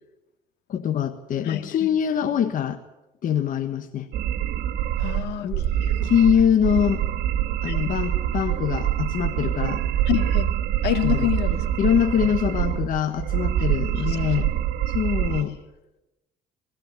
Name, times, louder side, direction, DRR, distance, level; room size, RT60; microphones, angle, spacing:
voice 1, 0.7-2.8 3.2-4.1 5.4-5.7 6.0-7.0 7.6-9.9 11.0-11.3 11.8-14.5 14.9-15.6, left 8 dB, 55° left, 8 dB, 1.4 m, -23 dB
voice 2, 1.4-1.9 5.0-5.5 5.8-6.1 7.7-7.8 10.1-10.5 10.8-11.9 14.0-14.2, left 14 dB, 75° left, 9 dB, 2.2 m, -28 dB
sound 1, 4.1-15.4, right 11 dB, 75° right, 1.6 m, -25 dB
21.0 x 17.0 x 9.6 m, 0.97 s
cardioid pair, 110°, 17 cm